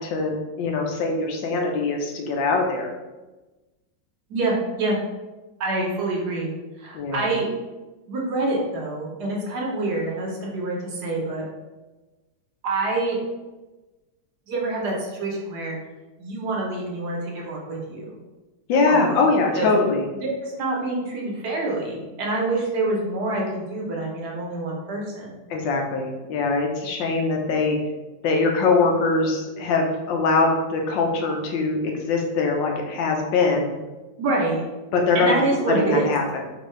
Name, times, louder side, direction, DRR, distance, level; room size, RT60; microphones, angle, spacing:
voice 1, 0.0-2.9 6.9-7.3 18.7-20.0 25.5-27.8 28.2-33.7 34.9-35.3 35.7-36.2, left 3 dB, 85° left, 1 dB, 1.4 m, -22 dB
voice 2, 4.3-5.0 5.6-6.5 6.8-7.5 8.1-11.4 12.6-13.2 14.5-15.7 16.2-18.1 18.9-19.2 19.5-19.7 20.2-25.4 34.2-34.6 35.1-36.1, right 2 dB, 65° right, -2 dB, 1.3 m, -26 dB
4.5 x 2.6 x 3.1 m, 1.1 s
omnidirectional pair, 2.0 m